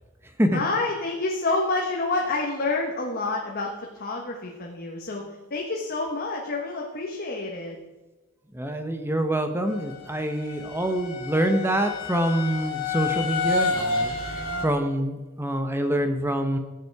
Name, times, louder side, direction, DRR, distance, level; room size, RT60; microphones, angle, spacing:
voice 1, 0.5-7.8 14.3-14.8, left 3 dB, 45° left, 0 dB, 1.4 m, -28 dB
voice 2, 8.5-16.6, right 1 dB, 10° right, 6 dB, 0.9 m, -26 dB
sound 1, 9.7-14.7, left 3 dB, 70° left, 3.1 m, -29 dB
15.0 x 8.3 x 4.8 m, 1.2 s
head